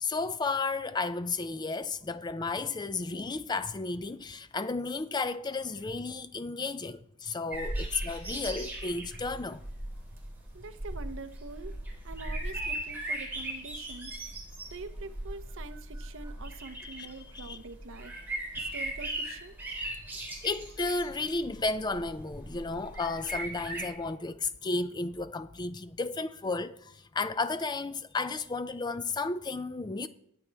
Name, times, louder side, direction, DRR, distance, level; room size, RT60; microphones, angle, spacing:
voice 1, 0.0-9.6 16.8-17.6 20.1-30.1, left 3 dB, 20° left, 0.4 m, -33 dB
sound 1, 7.5-23.9, right 1 dB, 10° right, 3.9 m, -38 dB
voice 2, 10.5-11.8 12.0-14.2 14.7-18.1 18.5-19.6, right 3 dB, 60° right, 0.8 m, -45 dB
20.0 x 8.5 x 3.4 m
head